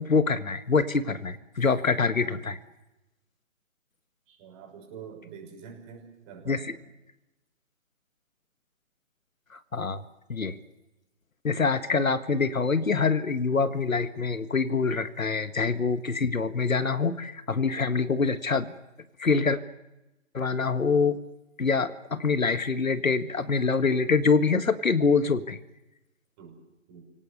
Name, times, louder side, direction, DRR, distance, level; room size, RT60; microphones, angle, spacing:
voice 1, 0.0-2.6 6.5-6.6 9.7-10.0 10.3-10.6 11.4-18.7 19.2-19.6 20.3-21.2 21.6-25.6, left 4 dB, 80° left, 12 dB, 1.8 m, -25 dB
voice 2, 4.3-6.8 26.4-26.6 26.9-27.0, right 7 dB, 20° right, 1 dB, 6.0 m, -46 dB
29.5 x 18.0 x 8.2 m, 0.97 s
figure-of-eight pair, 145°, 40 cm